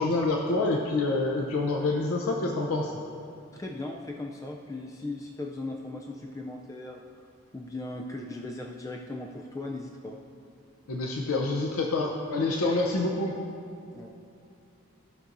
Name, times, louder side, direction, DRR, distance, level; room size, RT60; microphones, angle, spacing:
voice 1, 0.0-2.9 10.9-13.3, left 2 dB, 80° left, 0 dB, 0.6 m, -27 dB
voice 2, 3.5-7.0 7.5-10.2 13.9-14.1, left 2 dB, 15° left, 1 dB, 0.3 m, -38 dB
15.0 x 6.0 x 2.6 m, 2.7 s
head